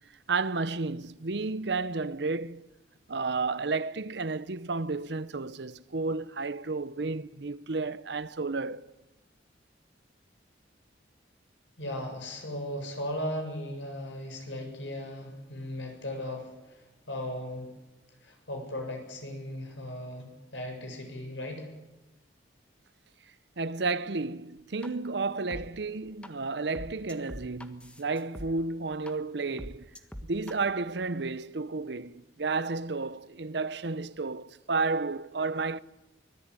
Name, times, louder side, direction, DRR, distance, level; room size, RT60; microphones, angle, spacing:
voice 1, 0.3-2.7 3.1-8.9 23.6-29.9 30.2-35.8, right 3 dB, 65° right, 0.8 m, -32 dB
voice 2, 11.8-17.7 18.2-21.7, left 1 dB, 80° left, 7.3 m, -37 dB
sound 1, 24.8-24.9 25.5-25.6 26.2-26.3 26.7-28.5 29.1-29.2 29.6-30.5, equal, 5° left, 1.5 m, -41 dB
24.5 x 18.5 x 9.7 m
head